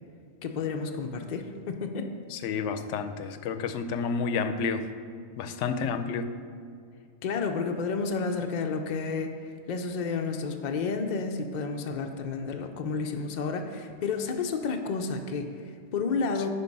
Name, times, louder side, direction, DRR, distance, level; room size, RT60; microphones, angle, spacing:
voice 1, 0.4-2.1 7.2-16.5, left 4 dB, 50° left, 4 dB, 0.5 m, -31 dB
voice 2, 2.3-4.8 5.4-6.3, left 5 dB, 80° left, 10 dB, 0.9 m, -30 dB
9.7 x 4.5 x 5.3 m, 2.2 s
omnidirectional pair, 1.2 m